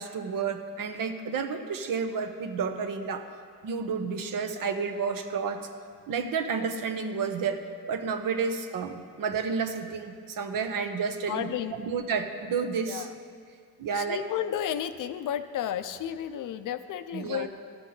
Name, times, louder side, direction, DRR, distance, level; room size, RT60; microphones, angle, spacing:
voice 1, 0.0-3.2 3.6-5.6 6.1-7.6 7.9-11.5 11.8-13.1 13.8-14.2 17.1-17.5, right 5 dB, 65° right, 6 dB, 0.9 m, -31 dB
voice 2, 11.3-11.8 12.8-13.1 13.9-17.5, left 10 dB, 60° left, 11 dB, 0.6 m, -32 dB
14.0 x 6.0 x 3.9 m, 2.1 s
cardioid pair, 75°, 36 cm